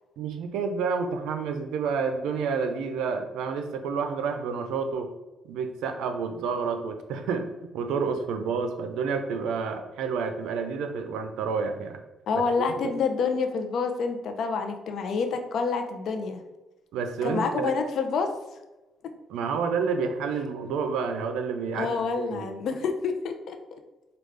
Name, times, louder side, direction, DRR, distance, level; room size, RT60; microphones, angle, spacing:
voice 1, 0.2-5.1 5.4-12.0 12.6-12.9 16.9-17.7 19.3-22.5, right 5 dB, 90° right, 7 dB, 0.4 m, -29 dB
voice 2, 12.3-16.4 17.2-18.3 21.7-23.6, left 5 dB, 70° left, 5 dB, 0.5 m, -28 dB
4.9 x 2.3 x 3.2 m, 1.1 s
cardioid pair, 90°, 0 cm